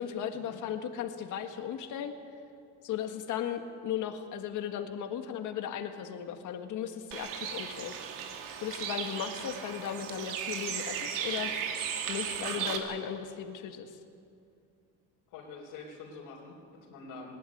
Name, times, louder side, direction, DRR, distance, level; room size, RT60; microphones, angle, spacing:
voice 1, 0.0-2.1 2.8-8.0 8.6-11.5 12.1-14.0, left 9 dB, 65° left, 6 dB, 1.7 m, -36 dB
Bird, 7.1-12.8, right 8 dB, 85° right, 2.4 m, -36 dB
voice 2, 15.3-17.3, left 4 dB, 90° left, -5 dB, 4.0 m, -46 dB
20.0 x 18.5 x 9.6 m, 2.5 s
cardioid pair, 110°, 32 cm